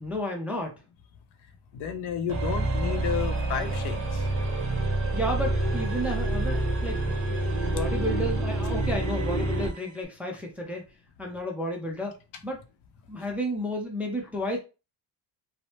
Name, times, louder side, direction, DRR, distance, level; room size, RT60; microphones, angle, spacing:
voice 1, 0.0-0.8 5.1-7.2 7.7-10.8 11.2-12.2 12.4-12.6 13.1-14.6, equal, 5° right, 0.3 m, -32 dB
voice 2, 1.7-4.2, left 8 dB, 80° left, 0.7 m, -32 dB
sound 1, 2.3-9.8, right 2 dB, 35° right, 0.9 m, -27 dB
3.1 x 2.0 x 2.8 m
cardioid pair, 150°, 41 cm